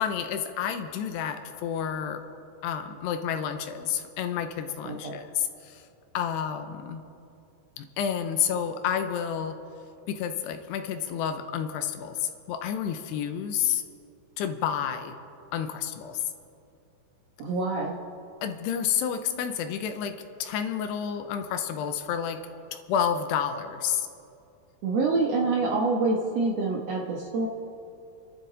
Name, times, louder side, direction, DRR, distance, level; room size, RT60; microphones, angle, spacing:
voice 1, 0.0-2.2 2.6-5.8 6.1-7.1 7.8-9.6 10.1-13.8 14.4-15.1 15.5-16.2 18.4-22.4 22.7-24.1, left 8 dB, 80° left, 7 dB, 2.8 m, -30 dB
voice 2, 4.8-5.2 17.4-18.0 24.8-27.5, right 3 dB, 85° right, -2 dB, 1.4 m, -26 dB
29.0 x 12.0 x 4.0 m, 2.7 s
omnidirectional pair, 4.9 m